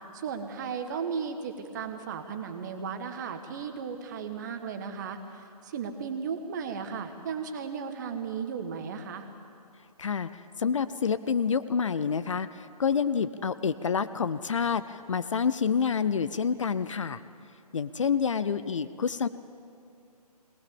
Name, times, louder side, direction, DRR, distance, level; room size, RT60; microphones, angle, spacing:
voice 1, 0.1-9.3, right 6 dB, 30° right, 7 dB, 1.4 m, -35 dB
voice 2, 10.0-17.2 17.7-19.3, left 6 dB, 50° left, 15 dB, 0.6 m, -28 dB
21.5 x 18.5 x 7.1 m, 2.5 s
figure-of-eight pair, 145°, 20 cm